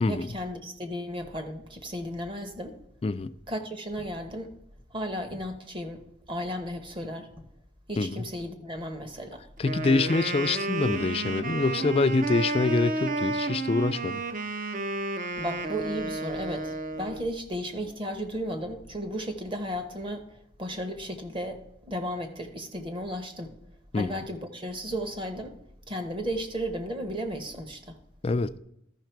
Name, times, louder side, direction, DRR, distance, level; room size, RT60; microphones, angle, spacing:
voice 1, 0.0-2.8 3.5-4.5 4.9-6.0 6.3-7.5 7.9-9.4 15.4-20.3 20.6-23.5 23.9-25.6 25.9-28.0, equal, 25° right, 0.9 m, -34 dB
voice 2, 9.6-14.2 23.9-24.1 28.2-28.5, left 3 dB, 30° left, 0.3 m, -25 dB
Wind instrument woodwind instrument, 9.6-17.3, right 2 dB, 40° right, 0.6 m, -31 dB
13.0 x 5.7 x 4.5 m
head